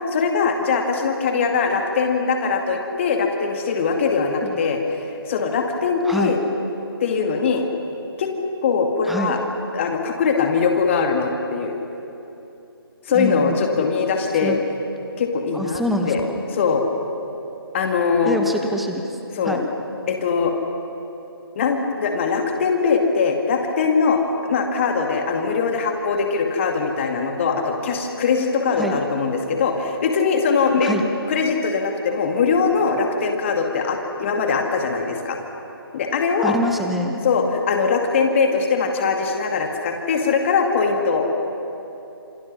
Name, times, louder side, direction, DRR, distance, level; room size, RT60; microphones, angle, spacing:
voice 1, 0.1-4.8 5.3-6.4 7.0-7.6 8.2-8.3 8.6-9.4 9.7-11.8 13.1-14.6 15.2-16.2 16.5-16.8 17.7-18.4 19.3-19.6 20.1-20.5 21.6-30.9 31.3-35.4 35.9-36.6 37.2-41.3, left 5 dB, 30° left, 3 dB, 2.2 m, -21 dB
voice 2, 6.0-6.4 9.1-9.4 13.1-13.6 14.4-14.6 15.5-16.4 18.2-19.0 19.4-19.7 28.7-29.0 30.8-31.1 36.4-37.2, equal, ahead, 3 dB, 1.4 m, -25 dB
28.0 x 28.0 x 6.2 m, 3.0 s
figure-of-eight pair, 145°, 13 cm